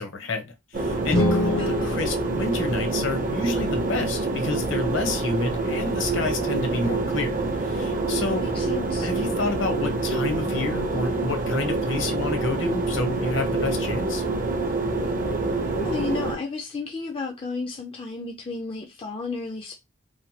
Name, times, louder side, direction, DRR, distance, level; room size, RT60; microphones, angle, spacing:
voice 1, 0.0-8.5 9.0-14.2, left 3 dB, 65° left, 0.8 m, -29 dB
sound 1, 0.7-16.4, right 3 dB, 40° right, 0.5 m, -26 dB
sound 2, 1.1-3.3, left 1 dB, 80° left, 1.5 m, -26 dB
voice 2, 1.6-2.0 8.4-9.1 15.8-19.8, left 3 dB, 25° left, 0.3 m, -33 dB
3.1 x 2.2 x 2.7 m
head